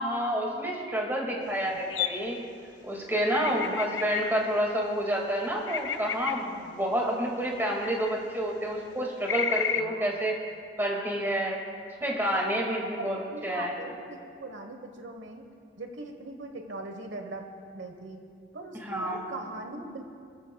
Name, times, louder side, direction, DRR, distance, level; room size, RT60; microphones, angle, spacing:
voice 1, 0.0-2.4 2.8-10.4 10.8-11.6 12.0-13.2 13.4-13.8 18.7-19.2, equal, 10° right, -1 dB, 2.0 m, -29 dB
voice 2, 1.1-1.8 2.2-2.3 3.4-3.6 9.8-10.2 12.8-15.5 15.8-17.4 17.7-18.2 18.5-20.2, right 2 dB, 80° right, 5 dB, 1.1 m, -41 dB
sound 1, 1.9-2.3 3.4-4.5 5.7-6.7 7.8-8.2 9.3-9.8, left 8 dB, 80° left, 0.6 m, -32 dB
29.5 x 13.5 x 2.3 m, 2.2 s
head